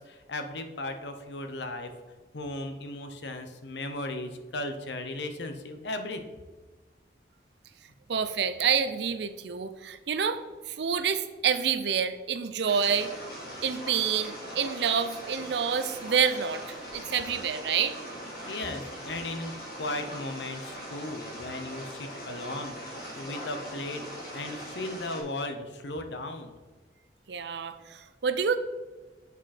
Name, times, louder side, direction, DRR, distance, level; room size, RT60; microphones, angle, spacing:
voice 1, 0.0-1.9 2.3-6.4 18.4-24.1 24.3-26.5, left 2 dB, 75° left, 7 dB, 0.8 m, -36 dB
voice 2, 8.1-13.1 13.6-18.0 27.3-28.6, right 7 dB, 70° right, 11 dB, 0.5 m, -28 dB
sound 1, 12.7-25.2, equal, 55° left, 2.4 m, -41 dB
8.2 x 5.1 x 4.2 m, 1.3 s
head